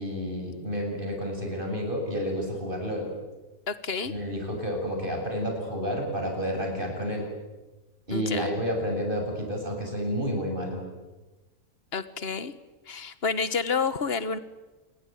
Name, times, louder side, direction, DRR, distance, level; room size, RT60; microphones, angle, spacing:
voice 1, 0.0-3.1 4.1-7.3 8.1-10.8, equal, 35° right, 2 dB, 7.6 m, -30 dB
voice 2, 3.7-4.1 8.1-8.5 11.9-12.5 12.9-14.4, left 5 dB, 40° left, 13 dB, 1.5 m, -29 dB
28.0 x 22.0 x 9.4 m, 1.2 s
omnidirectional pair, 1.6 m